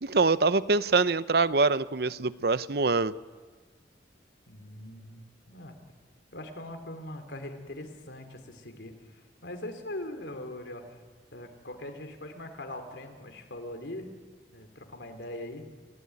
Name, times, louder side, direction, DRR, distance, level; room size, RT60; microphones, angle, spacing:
voice 1, 0.0-3.1, right 4 dB, 60° right, 15 dB, 0.7 m, -24 dB
voice 2, 4.5-5.2 5.5-5.8 6.3-8.9 9.4-10.8 11.3-14.1 14.5-15.7, left 1 dB, 90° left, 6 dB, 3.5 m, -41 dB
28.5 x 16.5 x 9.7 m, 1.5 s
head